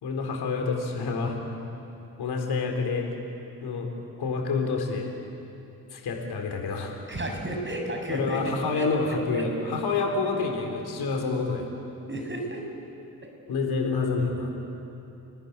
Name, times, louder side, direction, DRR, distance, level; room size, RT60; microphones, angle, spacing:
voice 1, 0.0-1.4 2.2-3.1 3.6-3.9 4.2-5.1 5.9-7.0 8.1-11.7 13.5-14.5, left 4 dB, 60° left, 2 dB, 4.1 m, -28 dB
voice 2, 7.1-8.4 8.8-8.9 12.1-12.6, right 1 dB, 25° right, 2 dB, 7.7 m, -32 dB
29.5 x 20.0 x 9.6 m, 2.9 s
figure-of-eight pair, 40°, 44 cm